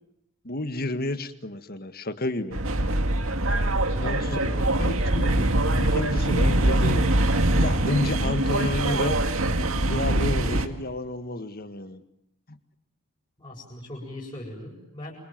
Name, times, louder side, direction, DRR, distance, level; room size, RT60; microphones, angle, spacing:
voice 1, 0.4-2.6 4.0-4.3 4.8-5.5 5.8-9.2 9.8-12.0 12.5-12.6, left 2 dB, 45° left, 10 dB, 1.8 m, -31 dB
sound 1, 2.5-10.7, right 1 dB, 75° right, 2.2 m, -23 dB
voice 2, 3.9-4.7 13.4-15.1, left 1 dB, 25° left, -6 dB, 7.6 m, -39 dB
28.5 x 26.0 x 7.6 m, 0.87 s
head